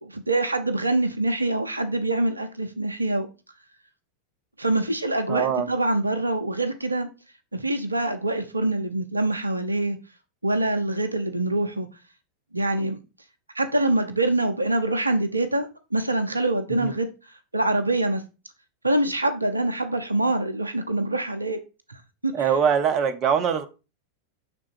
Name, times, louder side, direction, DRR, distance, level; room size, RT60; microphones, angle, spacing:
voice 1, 0.0-3.3 4.6-7.1 7.5-10.0 10.4-11.9 12.5-13.0 13.5-17.1 17.5-18.2 18.8-21.6 21.9-22.5, right 2 dB, 80° right, 0.6 m, -25 dB
voice 2, 5.3-5.7 16.8-16.9 22.3-23.7, right 7 dB, 30° right, 0.8 m, -22 dB
6.0 x 3.7 x 4.4 m
figure-of-eight pair, 90°, 0 cm